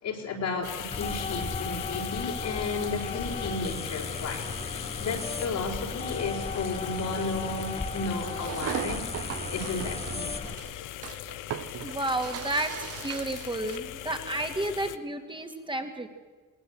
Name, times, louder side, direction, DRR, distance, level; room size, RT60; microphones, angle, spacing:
voice 1, 0.0-10.3, left 3 dB, 70° left, -2 dB, 4.3 m, -33 dB
sound 1, 0.6-15.0, left 13 dB, 90° left, 0.9 m, -40 dB
sound 2, 0.9-10.5, left 3 dB, 20° left, 1.5 m, -36 dB
sound 3, 8.3-13.8, right 11 dB, 50° right, 0.6 m, -38 dB
voice 2, 11.8-12.7 13.0-16.1, right 2 dB, 15° right, 5 dB, 2.5 m, -31 dB
19.5 x 19.0 x 7.9 m, 1.4 s
cardioid pair, 90°, 30 cm